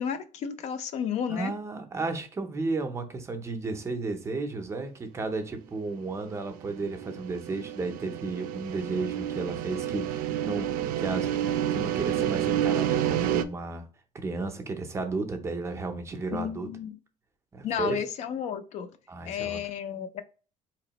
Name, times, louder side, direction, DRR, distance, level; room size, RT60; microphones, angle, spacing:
voice 1, 0.0-1.5 16.3-16.9 17.6-18.9 19.3-20.2, left 8 dB, 50° left, 0.5 m, -32 dB
voice 2, 1.3-11.3 11.7-13.8 14.1-16.7 17.5-18.0 19.1-19.6, right 3 dB, 20° right, 0.5 m, -33 dB
sound 1, 6.7-13.4, right 10 dB, 85° right, 0.4 m, -29 dB
4.1 x 3.0 x 2.9 m
cardioid pair, 170°, 14 cm